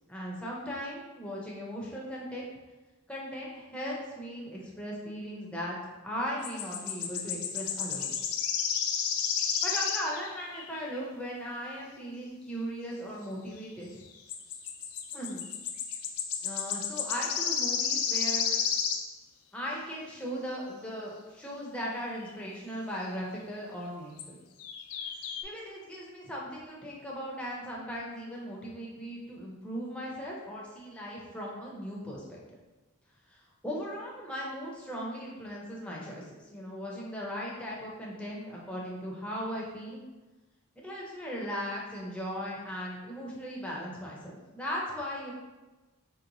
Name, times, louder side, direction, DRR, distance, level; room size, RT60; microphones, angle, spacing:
voice 1, 0.1-2.5 3.1-5.8 6.0-8.2 9.6-13.9 15.1-15.5 16.4-18.5 19.5-24.4 25.4-32.6 33.3-40.0 40.8-45.3, equal, 5° left, -4 dB, 0.5 m, -38 dB
sound 1, 6.4-11.0 14.3-19.1 22.3-22.4 24.2-24.3 24.6-25.4, left 7 dB, 90° left, 0.4 m, -32 dB
4.1 x 2.9 x 2.6 m, 1.1 s
head